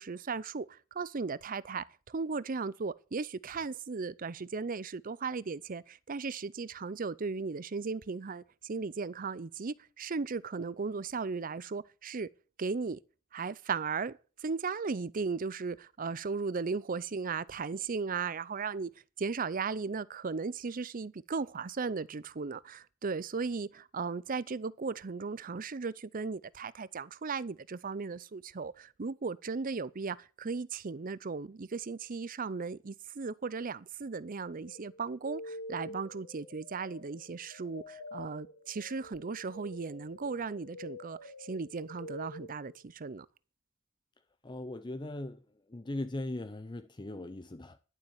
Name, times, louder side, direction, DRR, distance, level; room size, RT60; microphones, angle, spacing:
voice 1, 0.0-12.3 12.6-13.0 13.3-18.9 19.2-43.3, right 4 dB, 45° right, 0.6 m, -36 dB
sound 1, 34.6-42.9, left 1 dB, 90° left, 2.6 m, -47 dB
voice 2, 44.4-45.4 45.7-47.8, left 1 dB, 25° left, 0.6 m, -39 dB
11.5 x 7.5 x 7.2 m
head